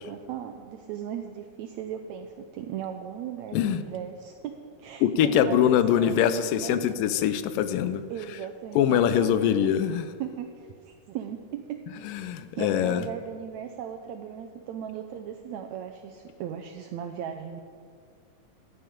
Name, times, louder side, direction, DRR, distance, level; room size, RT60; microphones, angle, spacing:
voice 1, 0.0-6.8 8.1-9.8 10.2-11.9 12.6-17.6, right 9 dB, 85° right, 5 dB, 1.6 m, -37 dB
voice 2, 5.0-8.0 8.8-10.0 12.1-13.0, left 10 dB, 85° left, 12 dB, 2.3 m, -23 dB
14.5 x 11.0 x 5.1 m, 2.1 s
omnidirectional pair, 3.9 m